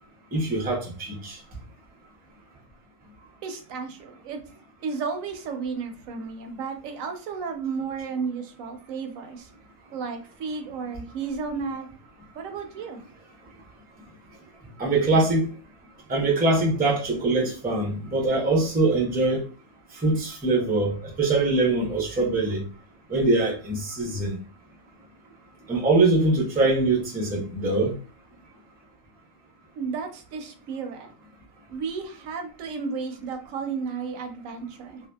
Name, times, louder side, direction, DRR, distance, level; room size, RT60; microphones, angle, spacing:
voice 1, 0.3-1.4 14.8-15.5 16.1-19.4 19.9-22.6 23.1-24.4 25.7-27.9, right 2 dB, 10° right, 0.4 m, -23 dB
voice 2, 3.4-4.4 4.8-9.5 9.9-11.9 12.3-13.0 29.8-31.1 31.7-35.0, right 5 dB, 85° right, 1.0 m, -33 dB
2.6 x 2.1 x 2.2 m
omnidirectional pair, 1.3 m